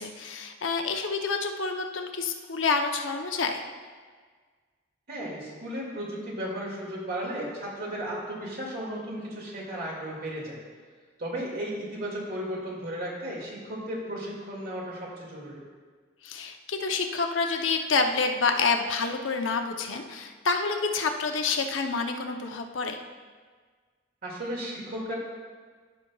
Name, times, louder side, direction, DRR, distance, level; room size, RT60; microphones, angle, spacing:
voice 1, 0.0-3.6 16.2-23.0, left 4 dB, 85° left, 4 dB, 0.7 m, -28 dB
voice 2, 5.1-10.6 11.2-15.6 24.2-25.1, right 1 dB, 55° right, -4 dB, 2.2 m, -35 dB
14.5 x 5.8 x 2.3 m, 1.6 s
head